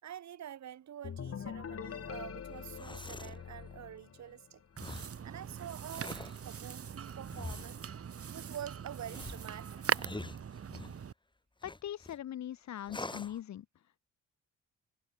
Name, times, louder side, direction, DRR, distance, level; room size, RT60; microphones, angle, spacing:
voice 1, 0.0-4.6 5.2-6.2 6.4-7.9 8.3-9.8, right 10 dB, 65° right, 4.7 m, -47 dB
sound 1, 1.0-4.7, left 8 dB, 50° left, 3.2 m, -44 dB
sound 2, 2.6-3.4 4.8-5.2 5.8-6.4 7.3-7.9 9.1-11.0 11.6-12.2 12.9-13.4, left 2 dB, 15° left, 3.6 m, -45 dB
sound 3, 4.8-11.1, right 7 dB, 50° right, 5.8 m, -40 dB
voice 2, 11.6-13.7, left 11 dB, 65° left, 2.3 m, -41 dB
cardioid pair, 90°, 30 cm